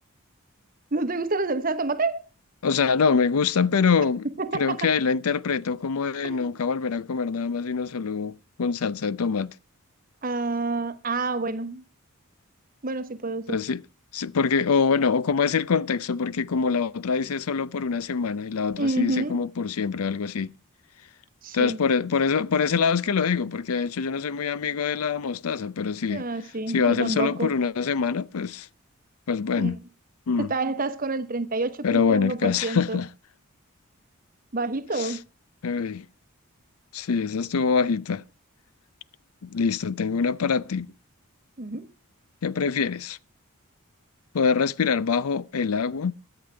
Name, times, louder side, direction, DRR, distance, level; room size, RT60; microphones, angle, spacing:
voice 1, 0.9-2.2 4.2-4.9 6.2-6.5 10.2-11.8 12.8-13.6 18.8-19.4 21.4-21.8 26.1-27.5 29.6-29.7 30.4-33.0 34.5-35.2 41.6-41.9, right 3 dB, 40° right, 1.0 m, -28 dB
voice 2, 2.6-4.3 4.5-9.5 13.5-13.8 14.1-20.5 21.5-26.2 26.7-28.7 29.3-29.8 30.3-30.5 31.8-33.1 35.0-35.1 35.6-36.0 36.9-38.2 39.4-40.9 42.4-43.2 44.3-46.1, left 5 dB, 80° left, 0.5 m, -24 dB
22.5 x 7.9 x 3.3 m
head